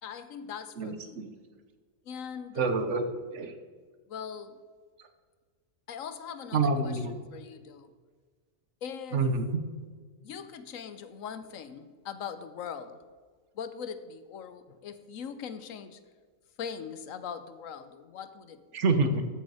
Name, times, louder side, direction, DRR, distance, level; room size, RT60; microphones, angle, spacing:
voice 1, 0.0-1.2 2.1-2.7 4.1-4.6 5.9-6.9 7.3-7.9 8.8-9.3 10.2-13.0 13.5-16.0 16.6-18.6, left 7 dB, 70° left, 11 dB, 1.1 m, -41 dB
voice 2, 0.8-1.3 2.5-3.0 3.3-3.6 5.0-5.1 6.5-7.2 9.1-9.6 18.7-19.2, right 3 dB, 60° right, 8 dB, 1.2 m, -27 dB
14.0 x 6.7 x 4.8 m, 1.5 s
omnidirectional pair, 1.5 m